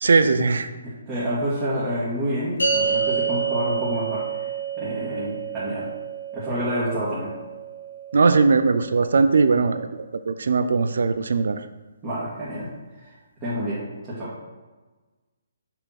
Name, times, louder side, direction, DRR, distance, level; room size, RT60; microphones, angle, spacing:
voice 1, 0.0-0.7 8.1-9.9 10.1-11.6, right 4 dB, 75° right, 10 dB, 0.5 m, -19 dB
voice 2, 0.8-4.5 4.8-5.9 6.3-7.3 12.0-12.7 13.4-14.3, equal, 20° right, -10 dB, 2.0 m, -28 dB
sound 1, 2.6-9.1, right 6 dB, 90° left, 2.2 m, -29 dB
6.8 x 3.6 x 5.8 m, 1.3 s
hypercardioid pair, 155°, 0 cm